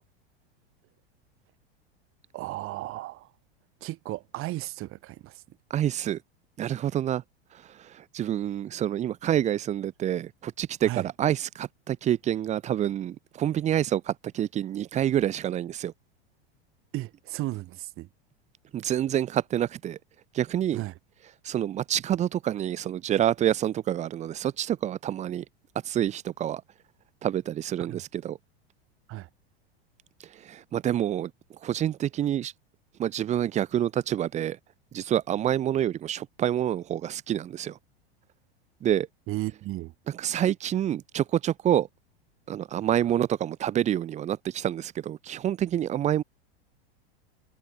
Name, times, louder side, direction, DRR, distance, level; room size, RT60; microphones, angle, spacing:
voice 1, 2.3-3.3 3.8-5.4 10.8-11.1 16.9-18.1 20.7-20.9 27.8-28.0 29.1-29.3 39.3-39.9, right 17 dB, 45° right, 2.0 m, -34 dB
voice 2, 5.7-6.2 6.6-7.2 7.7-15.9 18.7-20.0 20.3-20.8 21.4-25.4 25.8-26.6 27.2-28.4 30.3-31.3 31.6-32.5 33.0-34.6 34.9-37.8 38.8-39.1 40.2-41.9 42.5-46.2, right 11 dB, 25° right, 0.5 m, -27 dB
hypercardioid pair, 105°, 31 cm